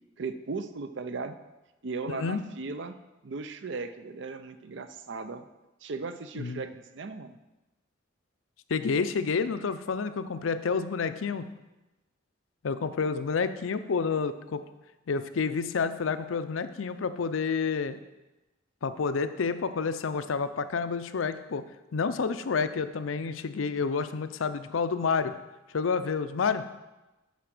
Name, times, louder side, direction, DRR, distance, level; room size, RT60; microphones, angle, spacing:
voice 1, 0.2-1.4 1.8-2.9 3.2-5.4 5.8-7.4, right 4 dB, 65° right, 10 dB, 0.5 m, -37 dB
voice 2, 2.1-2.4 6.4-6.6 8.7-11.5 12.6-14.6 15.1-18.0 18.8-21.6 21.9-25.4 25.7-26.6, left 5 dB, 90° left, 11 dB, 0.5 m, -29 dB
8.3 x 4.9 x 6.0 m, 1.1 s
head